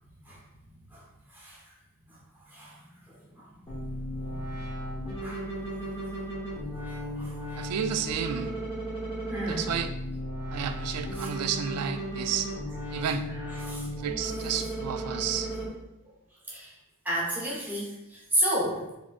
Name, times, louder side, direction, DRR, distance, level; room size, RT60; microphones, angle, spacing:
sound 1, 3.7-15.7, right 1 dB, 25° left, 1.0 m, -35 dB
voice 1, 4.1-4.4 5.2-5.4 7.2-7.4 9.3-9.7 11.2-11.3 13.6-13.9 16.5-16.7 17.0-18.9, right 1 dB, 10° right, -5 dB, 0.9 m, -31 dB
voice 2, 7.6-8.5 9.5-9.9 10.5-12.5 12.9-13.3 13.9-15.5, right 8 dB, 90° right, 8 dB, 0.3 m, -31 dB
4.0 x 3.0 x 2.4 m, 0.91 s
head